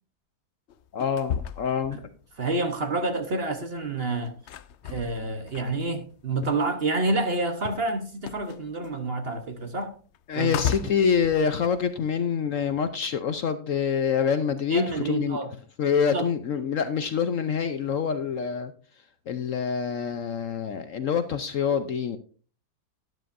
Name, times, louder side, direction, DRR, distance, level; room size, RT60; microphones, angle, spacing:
sound 1, 0.7-2.8 3.1-7.0 7.2-12.0, left 8 dB, 85° left, 0.6 m, -36 dB
voice 1, 0.9-2.1 10.3-15.4 15.8-18.7 19.3-22.2, left 7 dB, 60° left, 0.9 m, -26 dB
voice 2, 2.4-4.4 4.8-9.9 10.3-10.6 14.7-15.5 16.1-16.2, right 2 dB, 40° right, 1.1 m, -28 dB
12.5 x 11.0 x 2.6 m
omnidirectional pair, 1.8 m